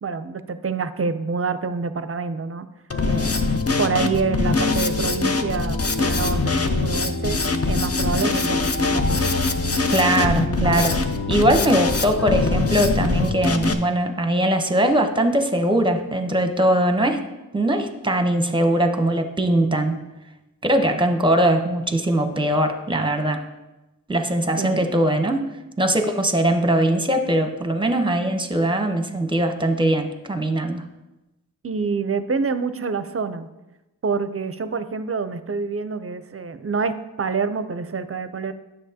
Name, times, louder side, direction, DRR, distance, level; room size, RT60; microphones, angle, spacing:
voice 1, 0.0-2.7 3.0-3.4 3.8-7.4 7.7-9.2 24.6-24.9 31.6-33.5 34.0-38.5, right 5 dB, 40° right, 11 dB, 0.5 m, -27 dB
Drum kit, 2.9-13.7, left 3 dB, 40° left, 0.7 m, -22 dB
voice 2, 9.9-17.2 17.5-20.0 20.6-23.4 24.1-25.5 25.8-30.9, right 1 dB, 15° right, 7 dB, 0.8 m, -21 dB
9.9 x 6.7 x 2.8 m, 1.0 s
wide cardioid pair, 45°, 37 cm